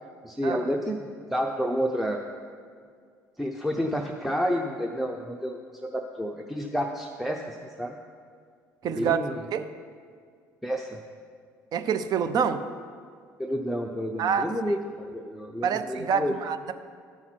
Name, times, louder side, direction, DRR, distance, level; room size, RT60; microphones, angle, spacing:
voice 1, 0.2-2.2 3.4-8.0 9.0-9.5 10.6-11.0 13.4-16.3, equal, ahead, 1 dB, 0.6 m, -30 dB
voice 2, 8.8-9.2 9.5-9.6 11.7-12.6 14.2-14.5 15.6-16.7, right 7 dB, 45° right, 9 dB, 0.6 m, -26 dB
12.5 x 5.6 x 4.5 m, 2.1 s
figure-of-eight pair, 60°, 9 cm